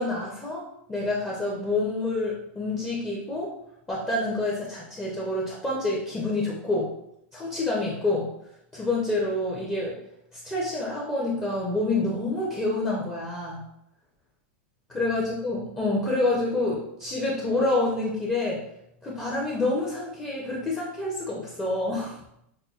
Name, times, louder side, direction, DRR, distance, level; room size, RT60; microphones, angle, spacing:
voice 1, 0.0-3.5 3.9-6.9 7.3-8.3 8.7-10.0 10.3-13.6 14.9-18.6 19.0-22.2, left 2 dB, 10° left, -6 dB, 0.5 m, -27 dB
5.4 x 2.2 x 2.3 m, 0.77 s
supercardioid pair, 160°, 7 cm